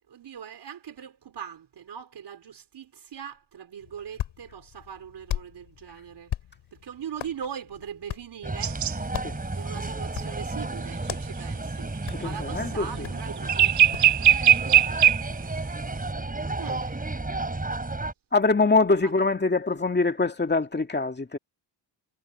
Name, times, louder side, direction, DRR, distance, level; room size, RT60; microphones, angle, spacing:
voice 1, 0.1-6.3 6.7-8.8 9.1-12.0 12.2-13.7 14.1-14.7 15.9-16.0 16.6-17.2 19.0-19.1, right 8 dB, 60° right, 4.3 m, -40 dB
Hands, 3.8-14.2, left 11 dB, 85° left, 3.3 m, -40 dB
sound 1, 8.4-18.1, right 2 dB, 20° right, 7.8 m, -32 dB
sound 2, 8.6-8.9 13.5-15.3, right 10 dB, 40° right, 0.5 m, -19 dB
voice 2, 12.1-12.9 18.3-21.4, left 3 dB, 20° left, 2.4 m, -24 dB
cardioid pair, 95°, 46 cm